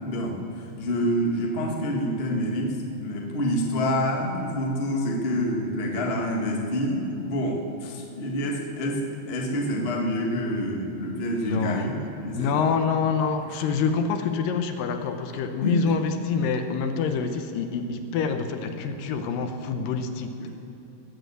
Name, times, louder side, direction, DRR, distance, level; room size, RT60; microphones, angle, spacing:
voice 1, 0.0-11.9 12.2-12.5 15.6-15.8 20.3-20.5, equal, 55° left, 0 dB, 0.6 m, -27 dB
voice 2, 11.4-11.9 12.3-20.5, left 5 dB, 75° left, 7 dB, 2.4 m, -26 dB
21.0 x 8.2 x 7.9 m, 2.7 s
omnidirectional pair, 4.3 m